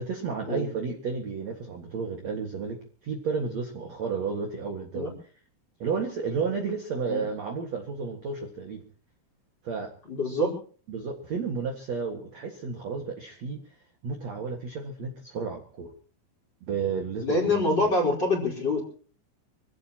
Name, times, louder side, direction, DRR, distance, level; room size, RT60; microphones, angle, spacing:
voice 1, 0.0-2.8 3.0-5.1 5.8-8.8 9.6-9.9 10.9-13.6 14.0-15.9 16.6-17.9, right 5 dB, 50° right, 2 dB, 2.3 m, -32 dB
voice 2, 10.0-10.6 17.2-18.8, left 2 dB, 25° left, 0 dB, 4.6 m, -25 dB
26.0 x 16.5 x 3.0 m, 0.42 s
omnidirectional pair, 5.5 m